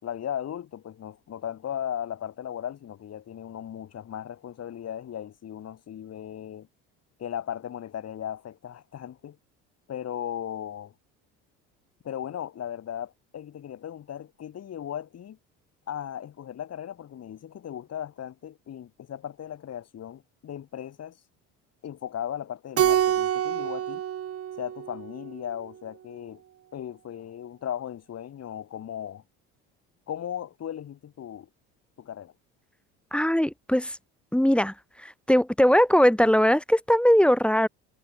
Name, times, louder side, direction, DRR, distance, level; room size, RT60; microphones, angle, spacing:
voice 1, 0.0-6.7 7.2-9.4 9.9-10.9 12.0-15.4 15.9-21.2 21.8-24.0 24.6-26.4 26.7-29.2 30.1-31.5 32.0-32.3, left 10 dB, 50° left, 5.9 m, -37 dB
Keyboard (musical), 22.8-25.4, right 10 dB, 45° right, 1.7 m, -26 dB
voice 2, 33.1-34.0 34.3-34.7 35.0-37.7, equal, 5° left, 1.2 m, -20 dB
supercardioid pair, 75°, 33 cm